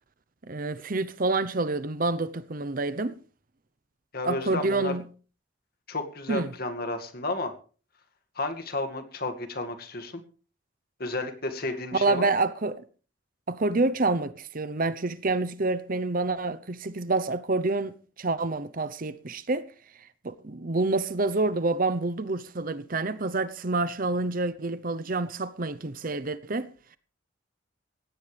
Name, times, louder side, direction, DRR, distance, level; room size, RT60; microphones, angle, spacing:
voice 1, 0.5-3.2 4.2-5.0 6.3-6.5 11.9-12.8 13.5-19.7 20.2-26.7, right 3 dB, 45° right, 0.8 m, -28 dB
voice 2, 4.1-5.0 5.9-7.5 8.4-10.2 11.0-12.3, left 2 dB, 50° left, 2.2 m, -32 dB
18.0 x 16.0 x 3.4 m
head